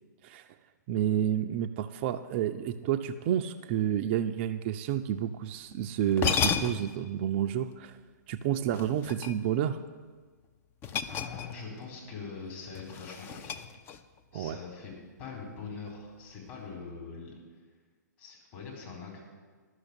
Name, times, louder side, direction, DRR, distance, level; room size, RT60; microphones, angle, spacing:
voice 1, 0.9-8.0 8.3-9.8 14.3-14.6, right 10 dB, 35° right, 7 dB, 0.4 m, -30 dB
sound 1, 5.7-5.8 6.1-7.0 8.7-9.6 10.8-11.8 12.0-12.3 12.7-14.2, left 7 dB, 20° left, 0.5 m, -32 dB
voice 2, 11.1-13.6 14.3-14.9 15.2-17.3 18.2-19.2, left 5 dB, 35° left, -1 dB, 4.1 m, -43 dB
11.5 x 6.3 x 8.8 m, 1.5 s
figure-of-eight pair, 120°, 10 cm